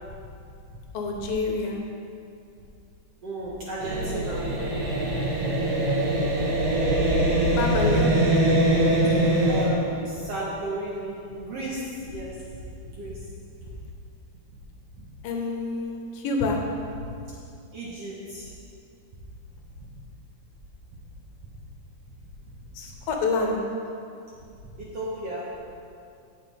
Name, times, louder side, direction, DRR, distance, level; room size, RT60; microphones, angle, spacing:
voice 1, 0.9-1.8 6.1-8.2 15.2-16.6 16.9-17.0 22.7-23.7, left 3 dB, 70° left, 1 dB, 2.7 m, -29 dB
voice 2, 3.2-4.4 4.8-4.9 6.1-6.2 9.4-12.3 12.8-13.1 13.6-13.7 17.7-18.5 24.8-25.4, right 2 dB, 60° right, -6 dB, 1.6 m, -34 dB
sound 1, 3.8-9.7, right 1 dB, 75° right, 4.0 m, -23 dB
17.0 x 6.8 x 3.6 m, 2.5 s
omnidirectional pair, 4.6 m